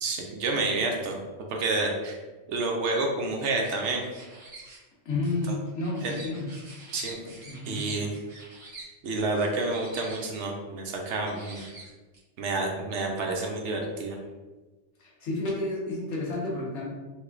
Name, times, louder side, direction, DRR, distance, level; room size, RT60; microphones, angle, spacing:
voice 1, 0.0-2.2 2.5-4.0 5.5-5.6 6.0-6.2 6.9-7.2 7.7-8.1 9.0-11.6 12.4-14.2, right 3 dB, 70° right, 1 dB, 0.9 m, -29 dB
sound 1, 3.4-4.8 5.2-8.9 9.3-10.5 11.1-12.2, right 2 dB, 35° right, 1.0 m, -46 dB
voice 2, 5.0-6.5 7.5-7.9 15.0-16.9, left 2 dB, 70° left, -4 dB, 1.2 m, -31 dB
3.3 x 3.0 x 2.4 m, 1.2 s
omnidirectional pair, 1.3 m